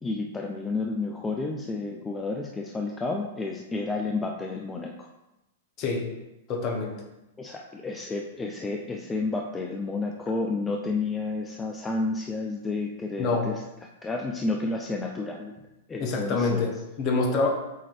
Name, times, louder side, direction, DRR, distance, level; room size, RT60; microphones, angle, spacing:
voice 1, 0.0-4.9 7.4-13.6 14.0-15.5 15.9-16.7, left 3 dB, 15° left, 1 dB, 0.5 m, -31 dB
voice 2, 5.8-6.1 6.5-7.0 13.2-13.5 16.0-17.5, left 3 dB, 40° left, 2 dB, 1.3 m, -26 dB
7.3 x 3.2 x 4.3 m, 0.96 s
hypercardioid pair, 115°, 0 cm